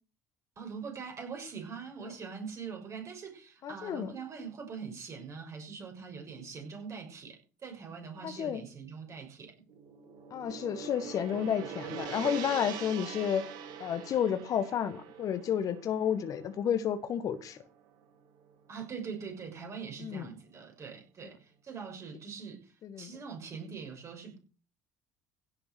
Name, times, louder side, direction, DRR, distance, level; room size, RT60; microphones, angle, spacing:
voice 1, 0.6-9.6 18.7-22.6 23.0-24.4, right 6 dB, 40° right, 6.5 m, -43 dB
voice 2, 3.6-4.2 8.2-8.6 10.3-13.4 13.8-17.6 20.0-20.3 22.8-23.1, left 8 dB, 50° left, 1.5 m, -31 dB
Gong, 9.7-18.0, right 8 dB, 60° right, 2.2 m, -43 dB
16.5 x 7.0 x 6.5 m
figure-of-eight pair, 60°, 8 cm